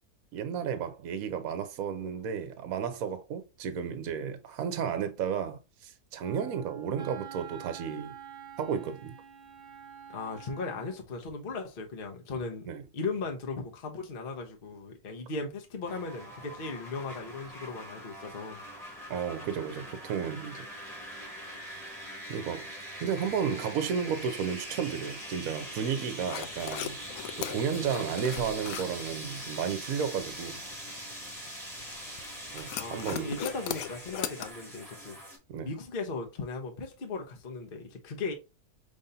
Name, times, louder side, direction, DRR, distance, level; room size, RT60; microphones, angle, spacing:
voice 1, 0.3-8.2 8.6-9.1 12.7-12.8 19.1-20.7 22.3-22.7 23.0-27.0 27.4-30.6 32.5-33.4 35.5-35.7, right 7 dB, 70° right, 1.2 m, -33 dB
Wind instrument woodwind instrument, 6.2-11.0, right 8 dB, 40° right, 1.1 m, -47 dB
voice 2, 10.1-12.7 12.9-18.6 32.8-35.2 35.6-38.3, left 3 dB, 40° left, 1.0 m, -37 dB
sound 1, 15.8-35.4, equal, ahead, 1.4 m, -43 dB
sound 2, 26.3-34.5, left 9 dB, 70° left, 0.9 m, -40 dB
5.3 x 3.4 x 2.7 m
omnidirectional pair, 1.6 m